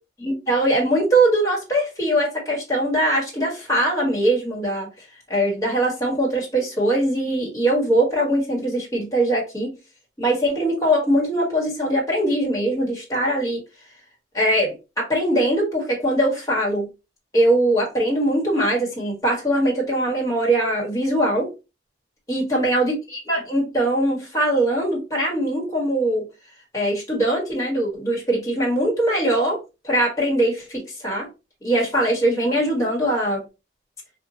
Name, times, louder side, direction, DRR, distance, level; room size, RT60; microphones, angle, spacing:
voice 1, 0.2-4.9 5.3-9.7 10.2-13.6 14.3-16.9 17.3-21.5 22.3-26.3 26.7-31.3 31.6-33.4, right 1 dB, 15° left, 1.1 m, -21 dB
2.8 x 2.2 x 2.7 m
head